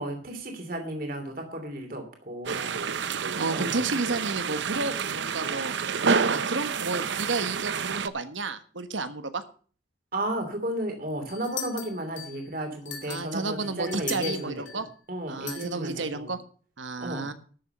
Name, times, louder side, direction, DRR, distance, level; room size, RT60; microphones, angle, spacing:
voice 1, 0.0-2.7 3.5-3.7 10.1-16.3 17.0-17.3, right 1 dB, 50° right, 4 dB, 3.0 m, -34 dB
sound 1, 2.5-8.1, right 5 dB, 75° right, 0.7 m, -28 dB
voice 2, 3.3-5.7 6.3-9.4 13.1-14.9 15.3-16.4 16.8-17.3, right 3 dB, 90° right, 11 dB, 1.4 m, -31 dB
sound 2, 11.3-12.4 12.9-14.8 15.5-15.7, left 9 dB, 70° left, 3.2 m, -38 dB
13.0 x 7.2 x 6.6 m, 0.42 s
head